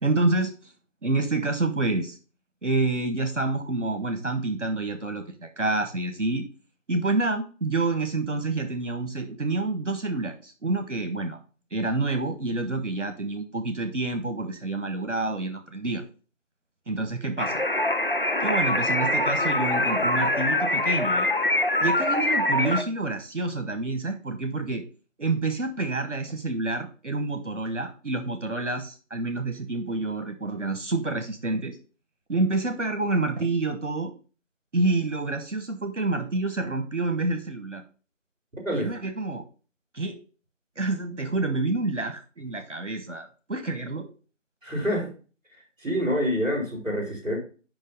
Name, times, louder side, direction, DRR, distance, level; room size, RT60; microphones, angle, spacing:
voice 1, 0.0-0.7 1.0-2.2 2.6-6.4 6.9-11.4 11.7-16.0 16.9-17.6 18.4-21.4 21.8-24.8 25.2-31.8 32.3-34.1 34.7-37.8 38.7-39.5 39.9-40.2 40.7-44.1, right 2 dB, 65° right, 7 dB, 1.3 m, -28 dB
sound 1, 17.4-22.8, left 1 dB, 45° left, 0.5 m, -24 dB
voice 2, 44.6-45.1 45.8-47.4, equal, 5° right, -20 dB, 2.6 m, -26 dB
5.6 x 5.5 x 5.4 m, 0.36 s
figure-of-eight pair, 165°, 38 cm